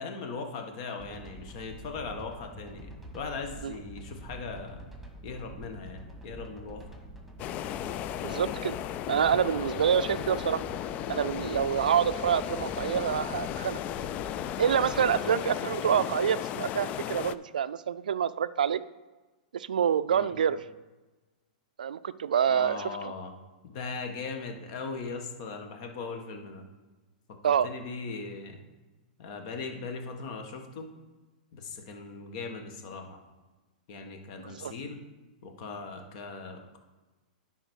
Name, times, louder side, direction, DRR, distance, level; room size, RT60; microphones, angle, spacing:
voice 1, 0.0-4.9 5.2-6.8 10.0-10.2 15.1-15.3 20.1-20.6 22.5-23.3 23.6-26.6 27.4-28.6 29.2-30.9 31.5-33.2 33.9-35.0 35.4-36.8, left 4 dB, 55° left, 4 dB, 1.6 m, -39 dB
sound 1, 1.0-15.1, right 1 dB, ahead, 1.8 m, -46 dB
sound 2, 7.4-17.4, left 12 dB, 35° left, 0.3 m, -35 dB
voice 2, 8.2-8.7 9.1-10.6 11.1-13.8 14.6-18.8 19.5-20.6 21.8-23.1 27.4-27.7 34.4-34.7, right 8 dB, 80° right, 15 dB, 0.4 m, -27 dB
10.0 x 4.2 x 6.4 m, 1.2 s
hypercardioid pair, 120°, 4 cm